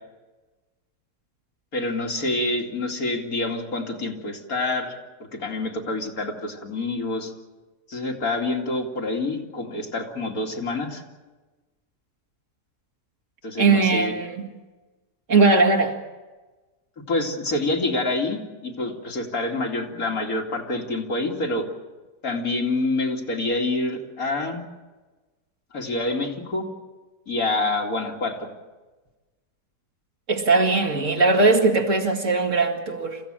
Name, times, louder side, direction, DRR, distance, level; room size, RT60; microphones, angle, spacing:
voice 1, 1.7-4.9 5.4-7.3 7.9-11.0 13.4-14.1 17.1-21.7 22.2-24.6 25.7-26.7 27.3-28.5, left 2 dB, 60° left, 1 dB, 3.0 m, -27 dB
voice 2, 13.6-14.6 15.3-15.9 30.3-33.2, right 3 dB, 50° right, 2 dB, 2.5 m, -19 dB
27.5 x 15.5 x 8.9 m, 1.2 s
omnidirectional pair, 1.7 m